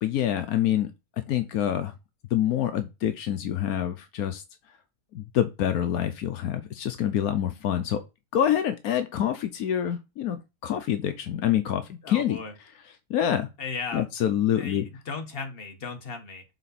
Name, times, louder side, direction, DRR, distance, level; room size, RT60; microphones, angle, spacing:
voice 1, 0.0-0.9 1.3-1.9 2.3-4.4 5.1-8.0 8.3-12.4 13.1-13.5 13.9-14.8, left 10 dB, 85° left, 1.2 m, -26 dB
voice 2, 12.0-12.5 13.6-14.0 14.6-16.4, left 4 dB, 40° left, 1.5 m, -36 dB
6.7 x 4.1 x 4.1 m
omnidirectional pair, 1.5 m